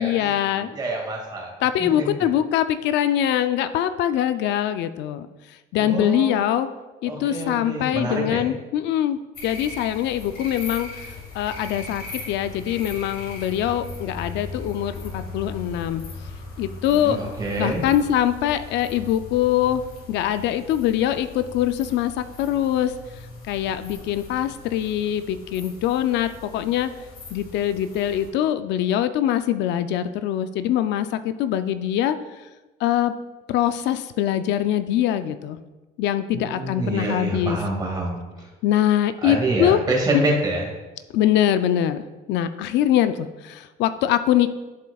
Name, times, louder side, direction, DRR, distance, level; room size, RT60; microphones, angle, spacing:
voice 1, 0.0-0.7 1.6-5.3 5.7-6.7 7.0-9.2 9.4-16.0 16.6-17.2 17.6-19.8 20.1-22.9 23.5-26.9 27.3-32.2 32.8-33.1 33.5-35.6 36.0-37.6 38.6-39.8 41.1-42.0 42.3-44.5, left 11 dB, 75° left, 11 dB, 0.5 m, -23 dB
voice 2, 0.6-1.5 1.8-2.1 5.7-6.5 7.1-8.5 17.0-17.8 36.3-38.5 39.2-40.6, right 1 dB, 20° right, -1 dB, 2.0 m, -26 dB
sound 1, 9.3-28.3, left 3 dB, 60° left, 2.1 m, -39 dB
11.0 x 7.4 x 2.3 m, 1.1 s
cardioid pair, 170°, 18 cm